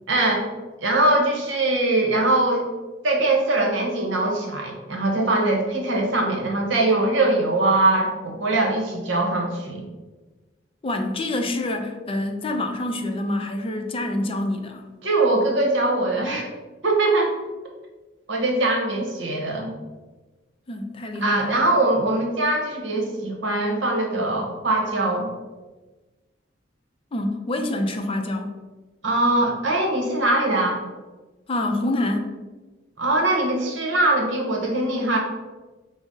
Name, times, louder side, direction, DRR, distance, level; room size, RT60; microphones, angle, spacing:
voice 1, 0.1-0.5 0.8-2.7 3.0-9.8 15.0-16.4 16.8-17.3 18.3-19.7 21.2-25.3 29.0-30.8 33.0-35.2, right 2 dB, 70° right, 1 dB, 0.9 m, -22 dB
voice 2, 10.8-14.9 20.7-21.5 27.1-28.6 31.5-32.3, left 1 dB, 30° left, 4 dB, 0.4 m, -26 dB
4.9 x 2.0 x 3.9 m, 1.2 s
head